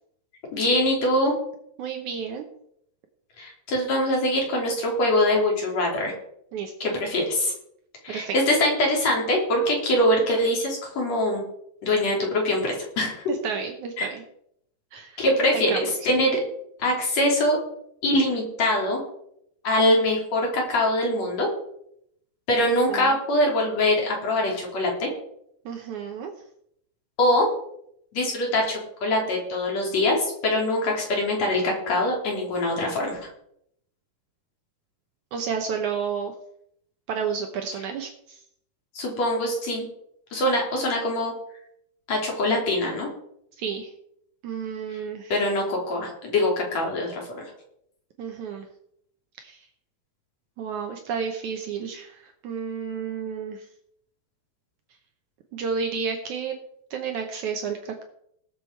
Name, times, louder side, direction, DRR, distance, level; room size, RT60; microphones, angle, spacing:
voice 1, 0.5-1.3 3.4-6.1 6.8-7.5 8.0-11.4 11.8-13.2 14.0-14.1 15.2-16.4 16.8-17.6 18.0-19.0 19.6-21.5 22.5-25.1 27.2-27.5 28.1-33.3 38.9-39.9 40.3-41.3 42.1-43.1 44.9-45.0 45.3-47.4, left 1 dB, 45° left, 0 dB, 4.0 m, -23 dB
voice 2, 1.8-2.5 6.5-6.9 8.1-8.4 13.4-14.2 14.9-15.2 15.5-15.9 22.6-23.2 25.6-26.3 35.3-36.3 37.1-38.4 43.6-43.9 44.4-45.4 48.2-48.7 49.4-49.6 50.6-53.6 55.5-56.5 56.9-58.0, right 6 dB, 80° right, 4 dB, 1.7 m, -31 dB
19.0 x 7.2 x 4.6 m, 0.73 s
omnidirectional pair, 4.8 m